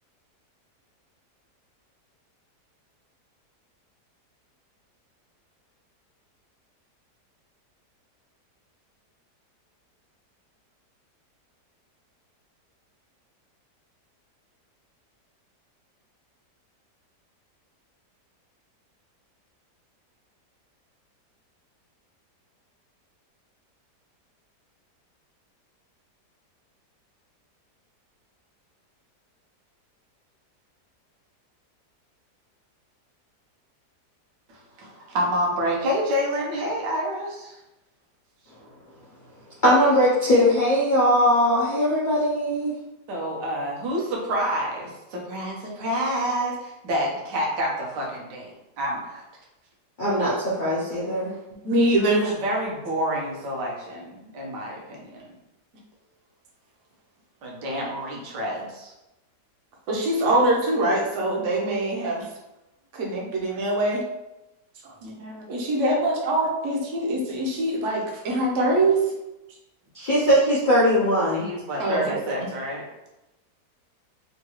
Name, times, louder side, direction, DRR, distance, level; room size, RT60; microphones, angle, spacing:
voice 1, 34.5-37.6 43.1-49.2 52.0-55.2 57.4-58.9 65.0-65.5 71.3-72.8, equal, 85° right, -2 dB, 1.4 m, -28 dB
voice 2, 39.6-42.7 50.0-51.3 69.9-71.4, equal, 70° left, -8 dB, 0.4 m, -20 dB
voice 3, 51.6-52.3 59.9-62.3 62.9-64.0 64.8-64.9 65.5-69.0 71.8-72.5, right 1 dB, 55° right, -2 dB, 0.9 m, -23 dB
3.7 x 2.3 x 2.9 m, 0.95 s
omnidirectional pair, 1.8 m